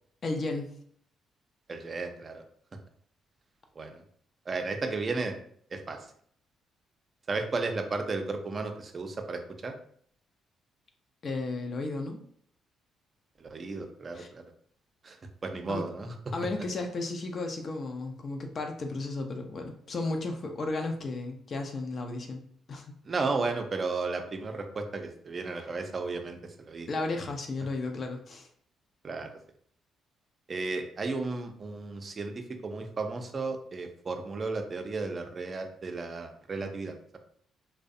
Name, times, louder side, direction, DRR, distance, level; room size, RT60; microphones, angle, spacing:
voice 1, 0.2-0.7 11.2-12.2 14.1-14.3 15.7-15.8 16.3-22.4 22.7-22.9 26.9-28.5, left 3 dB, 50° left, 4 dB, 0.4 m, -34 dB
voice 2, 1.7-2.4 3.8-4.0 4.5-5.4 5.7-6.0 7.3-9.7 13.4-14.4 15.0-15.2 15.4-16.1 23.1-26.9 29.0-29.3 30.5-37.2, right 3 dB, 45° right, 6 dB, 0.4 m, -34 dB
2.5 x 2.1 x 2.5 m, 0.63 s
hypercardioid pair, 55°, 0 cm